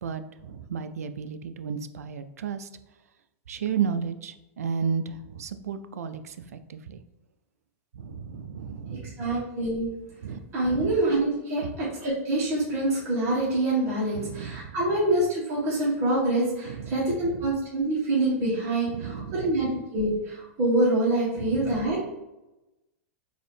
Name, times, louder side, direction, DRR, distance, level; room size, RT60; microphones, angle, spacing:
voice 1, 0.0-2.7 3.5-7.0 7.9-9.1 10.2-10.9 11.6-11.7 14.1-14.8 16.6-17.4 18.9-19.6 21.4-21.8, right 6 dB, 85° right, 10 dB, 0.3 m, -33 dB
voice 2, 9.2-9.9 10.5-22.1, right 2 dB, 35° right, -7 dB, 1.5 m, -26 dB
3.8 x 2.7 x 3.4 m, 0.99 s
hypercardioid pair, 120°, 8 cm